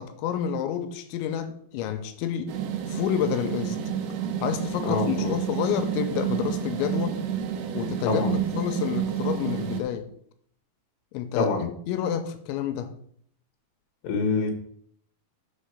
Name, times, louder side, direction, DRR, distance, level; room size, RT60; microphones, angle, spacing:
voice 1, 0.0-2.6 2.9-3.8 4.4-7.2 7.7-10.1 11.1-12.9, left 9 dB, 85° left, 2.9 m, -29 dB
sound 1, 2.5-9.8, right 9 dB, 80° right, 2.5 m, -29 dB
voice 2, 4.8-5.3 8.1-8.3 11.3-11.6 14.0-14.5, left 4 dB, 65° left, 2.5 m, -25 dB
6.6 x 5.5 x 5.1 m
omnidirectional pair, 5.2 m